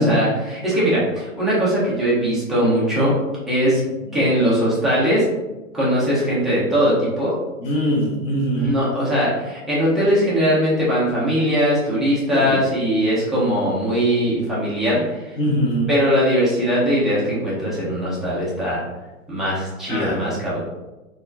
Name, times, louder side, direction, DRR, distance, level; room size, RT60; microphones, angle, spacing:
voice 1, 0.0-3.1 3.5-3.8 4.1-5.2 5.7-7.4 8.5-15.4 15.9-18.8 19.3-20.6, equal, ahead, -9 dB, 0.4 m, -20 dB
voice 2, 7.6-8.8 12.3-12.6 15.4-15.9 19.9-20.2, equal, 40° left, -2 dB, 0.9 m, -22 dB
4.0 x 2.4 x 2.5 m, 1.1 s
hypercardioid pair, 130°, 39 cm